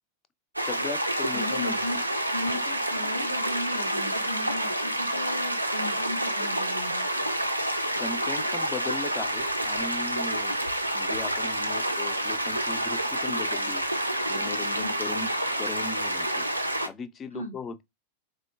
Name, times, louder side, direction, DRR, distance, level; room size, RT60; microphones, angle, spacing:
voice 1, 0.6-1.8 8.0-10.6 10.9-13.8 14.3-15.3 15.6-16.4 16.8-17.8, left 5 dB, 25° left, 0.4 m, -38 dB
sound 1, 0.6-16.9, right 1 dB, 85° right, 0.3 m, -28 dB
voice 2, 1.3-2.0 2.3-7.0 14.8-14.9 17.3-17.6, left 1 dB, 85° left, 0.9 m, -36 dB
3.7 x 2.1 x 2.2 m
figure-of-eight pair, 90°, 0 cm